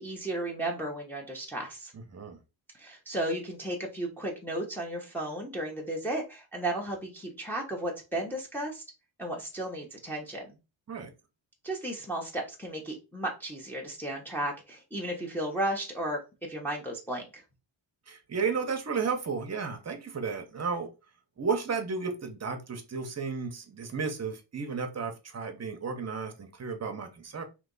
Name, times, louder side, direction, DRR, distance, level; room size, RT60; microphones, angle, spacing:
voice 1, 0.0-1.9 2.7-8.8 9.2-10.5 11.6-17.4, right 1 dB, 5° left, 0.9 m, -34 dB
voice 2, 1.9-2.4 10.9-11.1 18.1-20.9 21.4-27.4, right 5 dB, 30° right, 0.8 m, -33 dB
3.3 x 3.0 x 3.9 m
wide cardioid pair, 135°, 49 cm